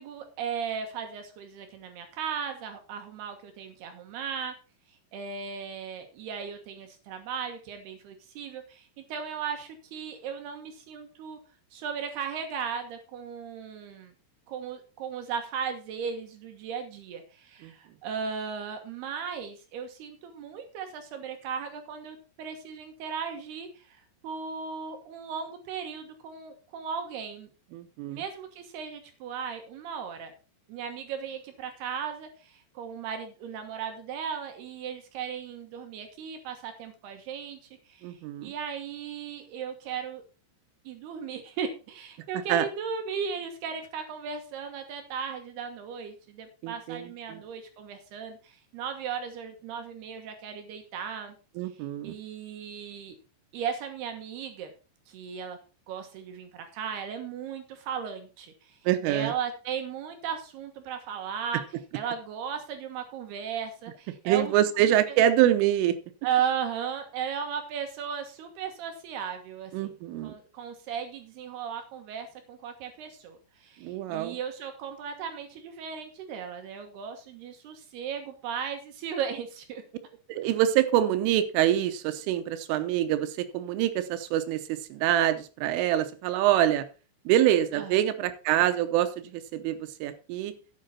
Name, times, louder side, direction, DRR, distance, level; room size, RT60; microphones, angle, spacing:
voice 1, 0.0-4.5 5.1-11.4 11.7-14.1 14.5-27.5 28.1-30.3 30.7-37.6 37.9-40.2 40.8-51.4 52.0-53.2 53.5-54.7 55.1-55.6 55.9-58.8 59.1-61.6 61.9-64.5 65.1-65.2 66.2-69.9 70.2-79.8 87.7-88.0, right 7 dB, 65° right, 6 dB, 2.9 m, -36 dB
voice 2, 27.7-28.2 38.0-38.5 42.5-42.7 46.6-47.4 51.6-52.2 58.9-59.3 64.3-66.0 69.7-70.3 73.8-74.4 80.3-86.9 87.3-90.5, right 12 dB, 90° right, 10 dB, 3.4 m, -25 dB
11.5 x 8.8 x 4.2 m, 0.34 s
omnidirectional pair, 5.5 m